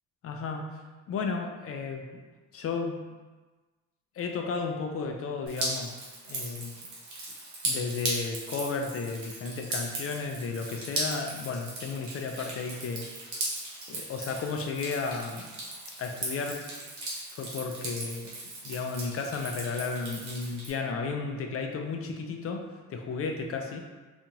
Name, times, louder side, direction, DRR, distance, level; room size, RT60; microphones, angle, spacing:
voice 1, 0.2-0.8 1.1-2.2 2.5-3.0 4.2-5.9 6.3-6.7 7.6-13.5 13.9-15.5 16.0-16.7 17.3-18.3 18.6-23.8, left 4 dB, 50° left, 3 dB, 0.4 m, -33 dB
Drip, 5.5-20.7, right 2 dB, 65° right, 1.0 m, -37 dB
2.8 x 2.4 x 2.6 m, 1.3 s
cardioid pair, 90°, 30 cm